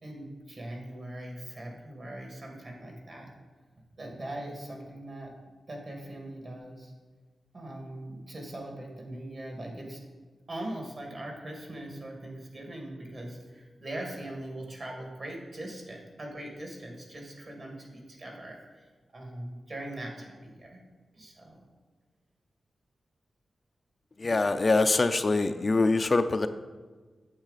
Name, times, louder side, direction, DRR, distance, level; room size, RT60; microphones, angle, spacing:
voice 1, 0.0-3.3 4.0-5.3 5.7-6.9 7.5-10.0 10.5-20.8 21.1-21.6, right 1 dB, 50° right, 0 dB, 2.1 m, -41 dB
voice 2, 24.2-26.5, left 3 dB, 40° left, 9 dB, 0.4 m, -24 dB
8.8 x 7.1 x 4.1 m, 1.4 s
wide cardioid pair, 85°, 0 cm